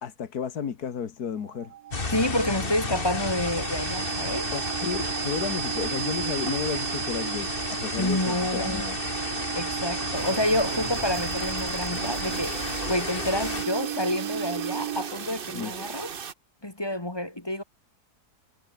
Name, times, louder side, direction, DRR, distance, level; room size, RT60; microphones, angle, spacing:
voice 1, 0.0-1.7 4.5-9.0 15.5-15.7, left 7 dB, 75° left, 2.0 m, -33 dB
sound 1, 1.4-15.3, right 11 dB, 75° right, 1.3 m, -34 dB
sound 2, 1.9-13.6, left 3 dB, 35° left, 2.2 m, -33 dB
voice 2, 2.1-4.5 8.0-8.9 9.5-16.1 16.6-17.6, left 1 dB, 15° left, 1.8 m, -28 dB
sound 3, 10.1-16.3, right 7 dB, 40° right, 1.0 m, -38 dB
omnidirectional pair, 1.7 m